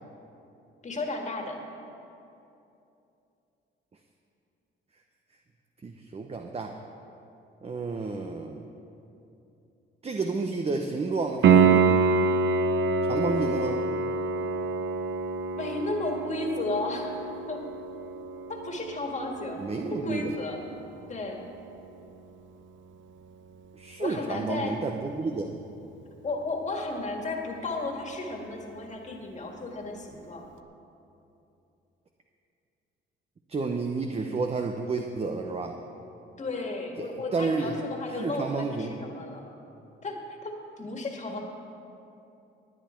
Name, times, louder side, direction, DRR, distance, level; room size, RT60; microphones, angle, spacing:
voice 1, 0.8-1.6 15.6-17.6 18.5-20.6 21.1-21.4 24.0-24.8 26.2-30.4 36.4-39.4 40.0-41.4, left 2 dB, 35° left, 1 dB, 1.9 m, -34 dB
voice 2, 5.8-6.7 7.6-8.7 10.0-11.9 13.0-13.8 19.6-20.4 23.7-25.6 33.5-35.8 37.0-37.7 38.1-38.9, right 4 dB, 30° right, 4 dB, 0.8 m, -31 dB
Piano, 11.4-22.1 25.4-25.5, right 4 dB, 70° right, 0.7 m, -27 dB
17.5 x 9.3 x 4.5 m, 2.8 s
cardioid pair, 90°, 20 cm